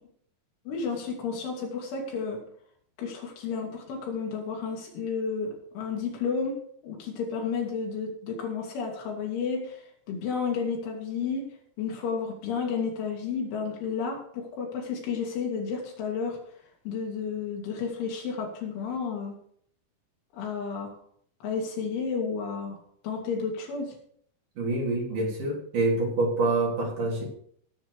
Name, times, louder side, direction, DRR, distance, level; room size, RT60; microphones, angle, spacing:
voice 1, 0.7-2.4 3.0-6.6 6.8-11.5 11.8-16.4 16.9-19.4 20.3-20.9 21.4-22.8 23.0-23.9, left 5 dB, 80° left, 0 dB, 5.2 m, -32 dB
voice 2, 24.6-27.2, right 2 dB, 45° right, -3 dB, 4.6 m, -26 dB
16.5 x 8.0 x 4.9 m, 0.63 s
omnidirectional pair, 5.4 m